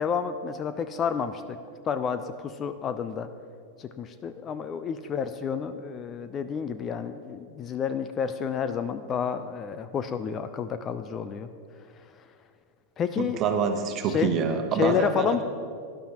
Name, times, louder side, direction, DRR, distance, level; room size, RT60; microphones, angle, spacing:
voice 1, 0.0-1.6 1.8-3.3 3.8-11.5 13.0-13.4 14.1-14.4 14.8-15.4, left 7 dB, 25° left, 11 dB, 0.5 m, -30 dB
voice 2, 13.2-15.4, right 6 dB, 35° right, 6 dB, 1.1 m, -26 dB
18.0 x 11.0 x 3.0 m, 2.2 s
figure-of-eight pair, 90°, 0 cm